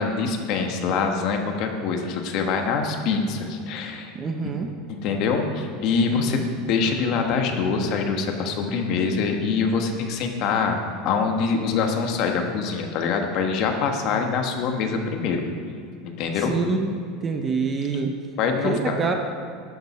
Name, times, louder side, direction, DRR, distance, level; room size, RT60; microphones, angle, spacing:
voice 1, 0.0-4.1 5.0-15.4 16.0-16.5 18.4-18.9, left 5 dB, 40° left, 4 dB, 1.1 m, -24 dB
voice 2, 4.1-4.7 6.1-6.5 16.3-16.9 17.2-18.1 18.6-19.1, right 4 dB, 15° right, 4 dB, 0.6 m, -26 dB
11.0 x 7.3 x 5.8 m, 2.3 s
supercardioid pair, 180°, 0 cm